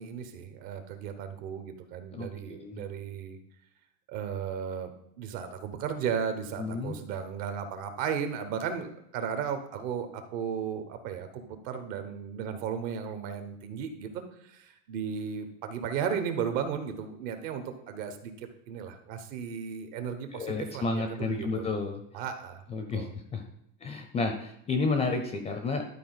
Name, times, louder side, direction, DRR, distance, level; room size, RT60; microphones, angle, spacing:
voice 1, 0.0-3.4 4.1-21.7 22.1-22.6 22.9-23.1, right 7 dB, 65° right, 8 dB, 1.3 m, -35 dB
voice 2, 2.1-2.8 6.6-7.0 20.3-22.0 22.7-23.4 23.8-25.8, left 3 dB, 15° left, 6 dB, 0.4 m, -31 dB
11.5 x 4.4 x 4.0 m, 0.77 s
supercardioid pair, 145°, 43 cm